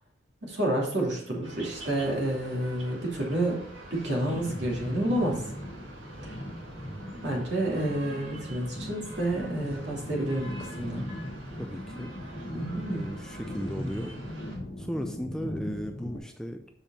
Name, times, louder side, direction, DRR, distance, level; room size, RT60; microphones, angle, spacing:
voice 1, 0.4-3.6 3.9-5.4 7.2-11.0 12.5-13.0, right 1 dB, 65° right, -2 dB, 2.6 m, -29 dB
sound 1, 1.4-14.6, right 1 dB, 85° right, 2.0 m, -46 dB
sound 2, 4.3-16.2, equal, 35° left, 1.2 m, -39 dB
voice 2, 11.6-12.1 12.9-14.2 14.8-16.7, equal, 5° left, 4 dB, 0.4 m, -36 dB
7.1 x 5.4 x 4.2 m, 0.66 s
head